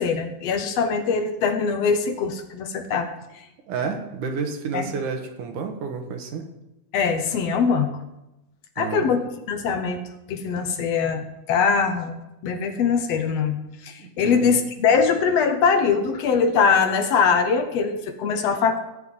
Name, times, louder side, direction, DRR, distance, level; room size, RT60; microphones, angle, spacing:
voice 1, 0.0-3.1 4.7-4.9 6.9-7.9 8.8-9.2 9.5-10.0 10.3-13.6 13.8-18.8, left 5 dB, 65° left, 7 dB, 1.8 m, -22 dB
voice 2, 3.7-6.5 8.8-9.1 14.0-14.6, right 5 dB, 80° right, 4 dB, 2.9 m, -30 dB
17.0 x 5.7 x 8.9 m, 0.94 s
omnidirectional pair, 3.6 m